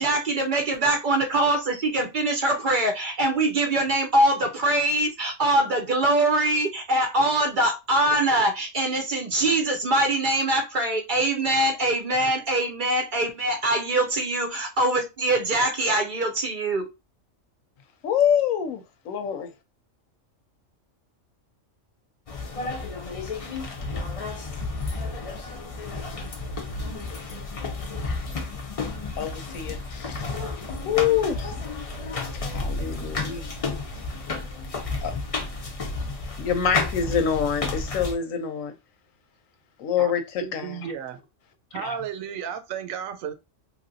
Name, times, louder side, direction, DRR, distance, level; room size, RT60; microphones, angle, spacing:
voice 1, 0.0-16.9, right 1 dB, 50° right, 0.6 m, -23 dB
voice 2, 18.0-18.8 19.1-19.5 28.8-28.9 29.2-30.3 30.8-31.5 32.5-33.5 35.0-35.1 36.4-38.7 39.8-40.7 41.8-42.0, left 8 dB, 80° left, 1.0 m, -25 dB
sound 1, 22.3-38.1, left 3 dB, 45° left, 0.4 m, -32 dB
voice 3, 40.4-41.2 41.7-43.3, right 8 dB, 80° right, 1.0 m, -33 dB
3.2 x 2.5 x 2.6 m
omnidirectional pair, 1.4 m